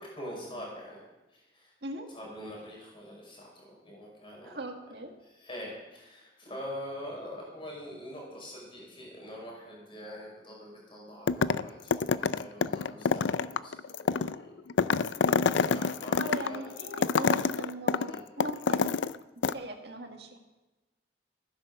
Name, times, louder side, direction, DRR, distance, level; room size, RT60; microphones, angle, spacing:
voice 1, 0.0-4.6 5.3-14.5 15.5-16.8 17.2-17.3 18.0-18.3, equal, 25° left, -2 dB, 5.2 m, -44 dB
voice 2, 4.4-5.1 16.2-19.0 19.4-20.4, right 1 dB, 60° right, 3 dB, 1.9 m, -39 dB
sound 1, 11.3-11.7 11.9-19.2 19.4-19.5, left 5 dB, 80° left, 0.5 m, -27 dB
14.5 x 10.5 x 6.7 m, 1.1 s
head